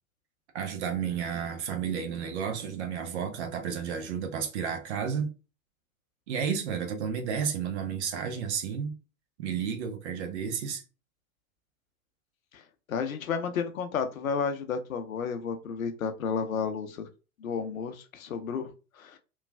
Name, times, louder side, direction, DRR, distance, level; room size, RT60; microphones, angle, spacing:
voice 1, 0.5-5.3 6.3-9.0 9.4-10.8, right 7 dB, 55° right, 0.8 m, -32 dB
voice 2, 12.9-17.1 17.4-18.7 19.0-19.2, left 6 dB, 75° left, 0.6 m, -32 dB
3.1 x 2.3 x 2.2 m
figure-of-eight pair, 95°, 42 cm